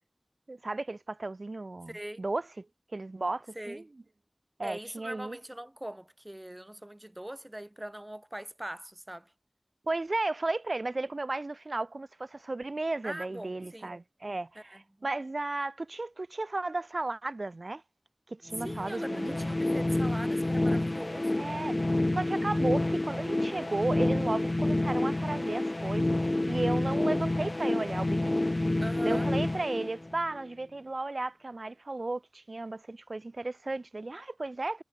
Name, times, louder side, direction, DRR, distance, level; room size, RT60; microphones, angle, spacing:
voice 1, 0.5-2.7 2.9-3.8 4.6-5.4 9.9-17.8 18.3-19.6 21.4-21.8 22.1-26.2 26.5-28.4 29.0-34.8, right 2 dB, 90° right, 1.1 m, -34 dB
voice 2, 1.9-2.2 3.5-3.9 4.6-9.3 13.0-13.9 14.6-14.8 18.6-21.4 28.8-29.3, right 1 dB, 25° right, 2.7 m, -42 dB
sound 1, 18.5-30.4, left 2 dB, 55° left, 0.5 m, -29 dB
wide cardioid pair, 45°, 0 cm